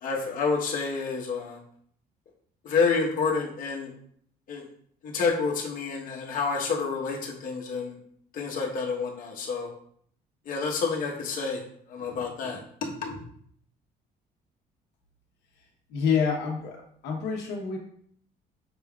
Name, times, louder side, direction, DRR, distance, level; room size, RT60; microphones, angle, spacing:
voice 1, 0.0-1.6 2.6-3.9 4.5-4.6 5.0-8.0 8.3-9.7 10.5-11.6 11.9-13.2, left 4 dB, 55° left, -1 dB, 1.0 m, -29 dB
voice 2, 15.9-17.8, left 6 dB, 85° left, 0 dB, 0.9 m, -27 dB
6.0 x 3.4 x 2.3 m, 0.63 s
cardioid pair, 110°, 17 cm